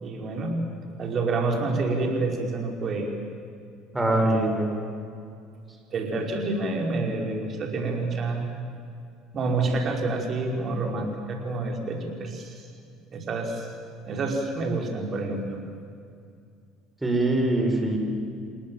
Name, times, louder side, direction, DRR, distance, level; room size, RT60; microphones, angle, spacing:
voice 1, 0.0-0.6 0.9-3.1 4.1-4.5 5.9-8.5 9.3-12.6 13.1-13.7 14.1-15.6, right 3 dB, 45° right, 2 dB, 5.2 m, -28 dB
voice 2, 3.9-4.8 17.0-18.0, right 2 dB, 10° right, 2 dB, 6.7 m, -23 dB
29.0 x 18.5 x 7.9 m, 2.4 s
hypercardioid pair, 65°, 0 cm